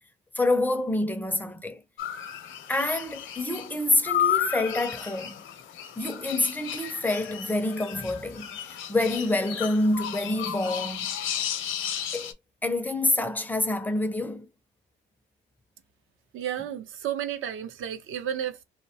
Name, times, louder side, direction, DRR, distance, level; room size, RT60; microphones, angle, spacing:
voice 1, 0.4-1.8 2.7-5.3 6.0-11.2 12.1-12.3 12.6-14.5, left 2 dB, 10° left, 0.4 m, -27 dB
sound 1, 2.0-12.3, left 10 dB, 65° left, 0.6 m, -33 dB
voice 2, 16.3-18.6, right 10 dB, 75° right, 0.6 m, -32 dB
2.9 x 2.1 x 2.7 m
cardioid pair, 130°, 21 cm